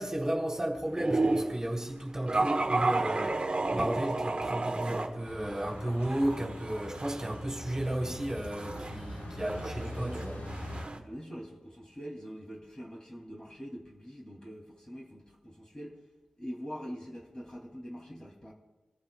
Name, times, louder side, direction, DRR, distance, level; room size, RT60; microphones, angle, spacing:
voice 1, 0.0-10.4, right 1 dB, 20° right, 3.7 m, -33 dB
sound 1, 1.0-1.6 2.3-5.1 5.5-11.0, right 2 dB, 35° right, 1.3 m, -32 dB
sound 2, 5.2-10.9, left 1 dB, 90° left, 4.6 m, -42 dB
voice 2, 11.0-16.0 16.4-18.5, equal, 25° left, 3.0 m, -44 dB
28.0 x 14.5 x 2.5 m
wide cardioid pair, 100°, 3 cm